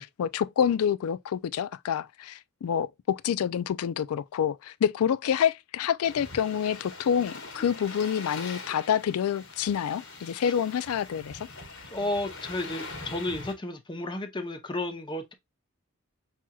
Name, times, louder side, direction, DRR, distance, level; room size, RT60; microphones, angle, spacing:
voice 1, 0.0-11.4, left 8 dB, 85° left, 0.3 m, -27 dB
sound 1, 6.0-13.5, left 3 dB, 60° left, 1.3 m, -42 dB
voice 2, 11.9-15.3, left 1 dB, 20° left, 0.6 m, -32 dB
6.1 x 2.9 x 2.3 m
head